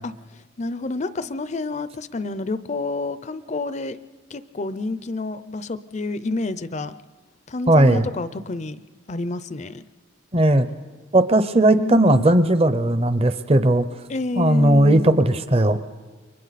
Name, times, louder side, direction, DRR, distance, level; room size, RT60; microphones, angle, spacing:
voice 1, 0.6-4.0 4.3-6.9 7.5-8.8 9.1-9.8 11.7-12.3 14.1-15.2, left 3 dB, 35° left, 14 dB, 0.5 m, -28 dB
voice 2, 7.7-8.1 10.3-10.7 11.1-13.9 14.4-15.8, right 1 dB, 30° right, 12 dB, 0.8 m, -17 dB
29.0 x 23.5 x 4.1 m, 1.4 s
head